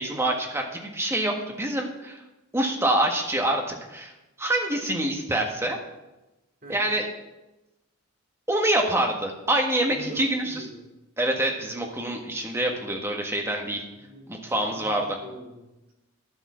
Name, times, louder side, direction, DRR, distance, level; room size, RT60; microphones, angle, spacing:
voice 1, 0.0-2.2 2.5-4.1 4.4-5.8 6.7-7.1 8.5-10.6 11.2-13.8 14.3-15.0, right 1 dB, 10° right, 1 dB, 1.6 m, -26 dB
voice 2, 6.6-6.9 9.9-10.9 13.9-15.9, equal, 40° right, -1 dB, 3.0 m, -43 dB
11.0 x 8.3 x 6.3 m, 1.0 s
head